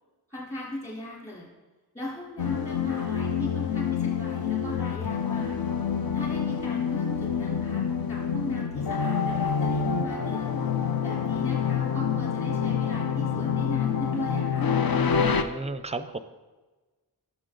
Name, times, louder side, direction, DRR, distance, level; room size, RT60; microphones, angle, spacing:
voice 1, 0.3-1.5 1.9-5.6 6.1-10.6 11.0-14.8, left 1 dB, 20° left, -6 dB, 3.6 m, -38 dB
sound 1, 2.4-15.4, left 7 dB, 65° left, 0.7 m, -27 dB
voice 2, 15.2-16.2, right 3 dB, 15° right, 11 dB, 0.5 m, -34 dB
17.5 x 7.0 x 3.9 m, 1.3 s
wide cardioid pair, 150°, 39 cm